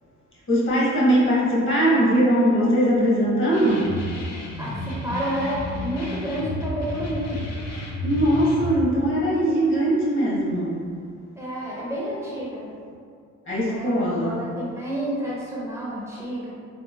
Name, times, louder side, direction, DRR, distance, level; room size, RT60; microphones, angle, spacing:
voice 1, 0.5-4.0 8.0-10.8 13.5-14.4, right 1 dB, 40° left, -6 dB, 1.0 m, -20 dB
sound 1, 3.5-8.8, left 1 dB, 60° left, 0.6 m, -31 dB
voice 2, 4.6-7.5 11.4-12.7 13.7-16.5, equal, 10° right, -8 dB, 0.5 m, -30 dB
3.7 x 2.0 x 2.6 m, 2.2 s
cardioid pair, 105°, 30 cm